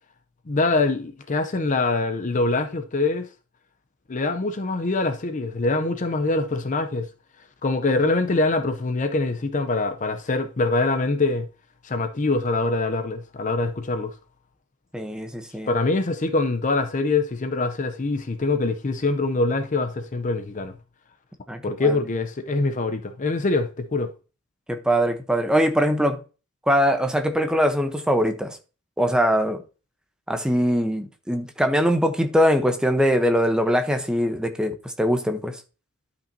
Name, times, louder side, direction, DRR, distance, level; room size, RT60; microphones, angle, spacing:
voice 1, 0.5-3.3 4.1-7.1 7.6-11.5 11.8-14.1 15.7-20.7 21.6-24.1, left 3 dB, 35° left, 0.6 m, -24 dB
voice 2, 14.9-15.7 21.5-22.0 24.7-26.2 26.7-28.6 29.0-29.6 30.3-35.6, equal, 5° right, 0.8 m, -22 dB
12.0 x 5.3 x 2.7 m
head